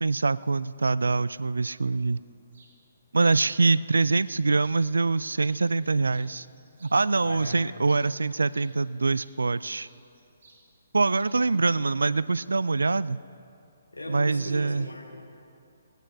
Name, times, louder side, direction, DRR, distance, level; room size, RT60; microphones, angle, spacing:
voice 1, 0.0-2.2 3.1-6.5 6.8-9.9 10.9-13.2 14.1-14.9, right 3 dB, 85° right, 18 dB, 0.3 m, -24 dB
sound 1, 2.5-2.7 3.2-4.8 5.3-5.8 6.1-9.4 9.7-10.6 10.9-11.6, right 3 dB, 60° right, 2.6 m, -58 dB
voice 2, 7.2-7.6 13.9-15.2, left 1 dB, 90° left, -1 dB, 2.5 m, -38 dB
18.5 x 9.1 x 4.6 m, 2.6 s
hypercardioid pair, 140°, 0 cm